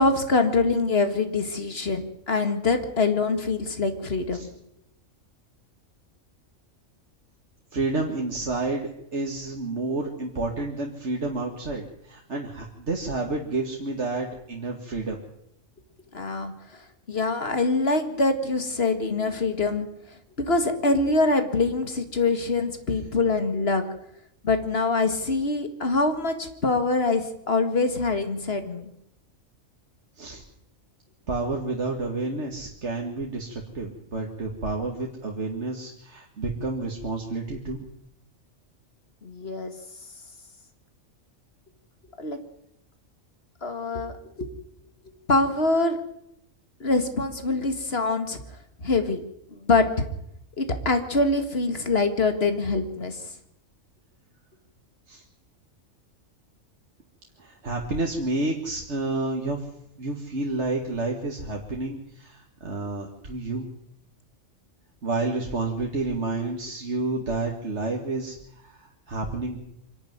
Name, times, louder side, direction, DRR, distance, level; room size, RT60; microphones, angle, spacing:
voice 1, 0.0-4.5 16.1-16.8 17.1-19.9 20.4-23.8 24.4-28.9 39.2-39.7 42.2-42.4 43.6-44.5 45.3-46.0 46.8-48.4 48.8-49.2 49.5-50.1 50.6-53.3, left 3 dB, 50° left, 7 dB, 2.2 m, -24 dB
voice 2, 7.7-15.2 30.2-30.4 31.3-37.9 55.1-55.2 57.4-59.7 60.0-63.7 65.0-69.6, right 2 dB, 60° right, 1 dB, 2.2 m, -30 dB
25.0 x 12.0 x 9.4 m, 0.77 s
omnidirectional pair, 1.3 m